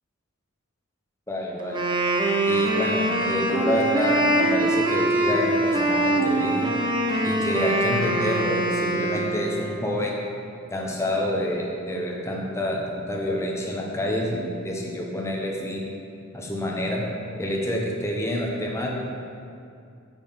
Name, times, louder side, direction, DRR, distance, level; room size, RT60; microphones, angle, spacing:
voice 1, 1.3-1.8 2.5-6.7 7.2-10.1 10.7-15.9 16.3-17.0 17.4-19.0, equal, 15° left, -1 dB, 0.8 m, -28 dB
Wind instrument woodwind instrument, 1.6-9.8, right 1 dB, 20° right, 0.6 m, -23 dB
6.8 x 5.9 x 3.6 m, 2.5 s
head